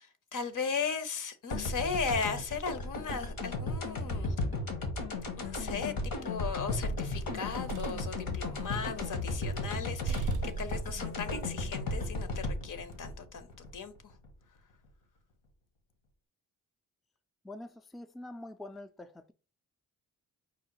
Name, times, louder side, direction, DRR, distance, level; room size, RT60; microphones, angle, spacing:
voice 1, 0.0-4.3 5.4-5.9 6.2-13.5 13.7-13.9, left 5 dB, 65° left, 0.9 m, -37 dB
sound 1, 1.5-14.3, left 2 dB, 80° left, 1.3 m, -35 dB
sound 2, 6.2-6.8 7.3-9.4 9.7-9.8 10.1-11.6, right 7 dB, 60° right, 0.5 m, -40 dB
voice 2, 17.4-19.3, left 1 dB, ahead, 0.4 m, -45 dB
4.8 x 2.1 x 4.7 m
cardioid pair, 60°, 34 cm